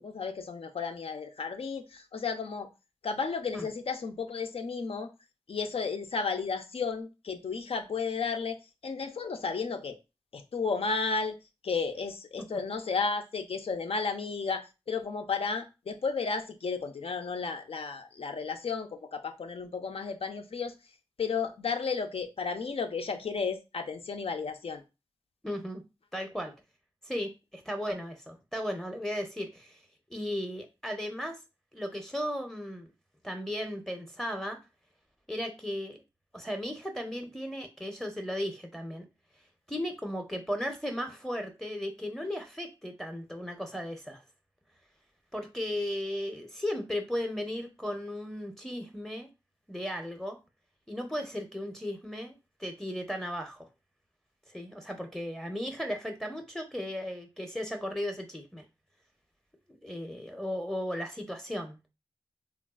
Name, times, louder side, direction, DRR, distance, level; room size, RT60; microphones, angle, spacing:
voice 1, 0.0-2.7 3.0-5.1 5.5-8.6 8.8-10.0 10.3-11.4 11.6-20.7 21.2-24.8, left 5 dB, 80° left, 6 dB, 0.4 m, -33 dB
voice 2, 25.4-25.8 26.1-26.5 27.0-29.8 30.1-31.4 31.7-32.9 33.2-34.6 35.3-36.0 36.3-39.1 39.7-44.2 45.3-49.3 49.7-50.4 50.9-53.7 54.5-58.6 59.8-61.8, equal, 5° left, 4 dB, 0.5 m, -36 dB
3.3 x 2.3 x 2.3 m, 0.27 s
wide cardioid pair, 50°, 10 cm